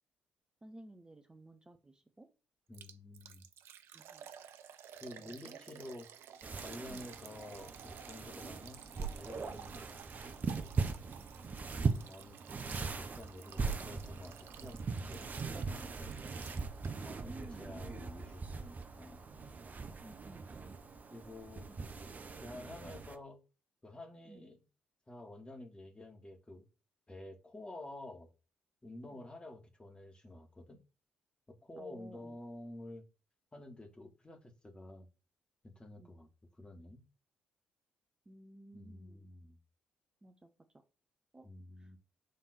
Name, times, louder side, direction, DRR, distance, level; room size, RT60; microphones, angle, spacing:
voice 1, 0.6-2.3 3.9-4.3 5.2-5.6 8.4-8.5 17.3-17.8 20.0-20.5 21.7-21.8 24.3-24.5 29.0-29.2 31.8-32.4 36.0-36.1 38.3-39.3 40.2-40.5 41.3-41.5 41.8-41.9, right 1 dB, 15° right, 6 dB, 1.0 m, -55 dB
voice 2, 2.7-3.4 5.0-6.1 6.6-9.8 10.6-10.7 11.9-14.8 15.1-16.1 17.0-19.2 21.1-21.7 22.3-23.4 23.8-24.6 25.1-26.6 27.1-28.3 28.8-30.8 31.5-33.0 33.5-35.1 35.6-36.3 36.6-37.0 38.7-39.6 41.4-42.0, left 1 dB, 20° left, 4 dB, 1.9 m, -50 dB
Liquid, 2.7-17.2 17.4-17.5 18.0-18.1, right 9 dB, 60° right, 0.5 m, -54 dB
sound 1, 6.4-23.2, right 4 dB, 40° right, 0.9 m, -40 dB
6.8 x 3.6 x 4.3 m, 0.31 s
figure-of-eight pair, 45°, 5 cm